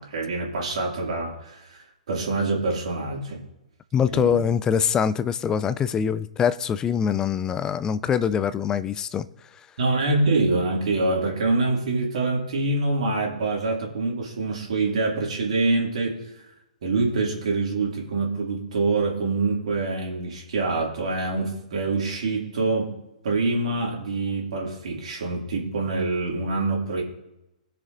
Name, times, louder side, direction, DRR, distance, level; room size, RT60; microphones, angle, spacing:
voice 1, 0.0-3.4 4.1-4.4 9.8-16.5 16.8-22.9 23.2-27.0, right 3 dB, 55° right, 2.4 m, -25 dB
voice 2, 3.9-9.3, left 7 dB, 15° left, 0.4 m, -24 dB
20.0 x 6.6 x 2.6 m
figure-of-eight pair, 120°, 4 cm